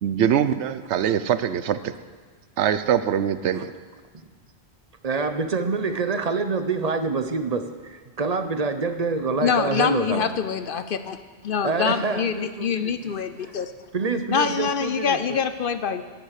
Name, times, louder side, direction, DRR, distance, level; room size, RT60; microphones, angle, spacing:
voice 1, 0.0-1.9 2.6-3.7, right 9 dB, 90° right, 13 dB, 1.0 m, -23 dB
voice 2, 5.0-10.3 11.6-13.1 13.4-13.6 13.9-15.4, right 4 dB, 40° right, 8 dB, 0.8 m, -27 dB
voice 3, 9.4-11.2 11.4-13.7 14.3-16.0, left 6 dB, 60° left, 10 dB, 0.8 m, -25 dB
12.0 x 10.5 x 6.5 m, 1.5 s
omnidirectional pair, 1.1 m